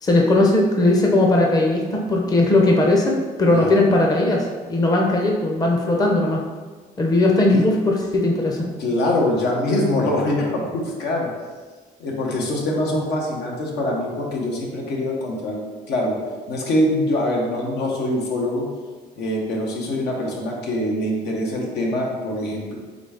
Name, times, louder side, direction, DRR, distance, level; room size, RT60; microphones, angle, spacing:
voice 1, 0.0-6.4 7.0-8.6, left 2 dB, 20° left, 0 dB, 0.6 m, -18 dB
voice 2, 8.8-11.3 12.0-15.6 15.9-16.2 16.5-18.7 19.2-22.8, left 1 dB, 80° left, -1 dB, 0.9 m, -23 dB
3.9 x 3.5 x 3.4 m, 1.4 s
cardioid pair, 110°, 17 cm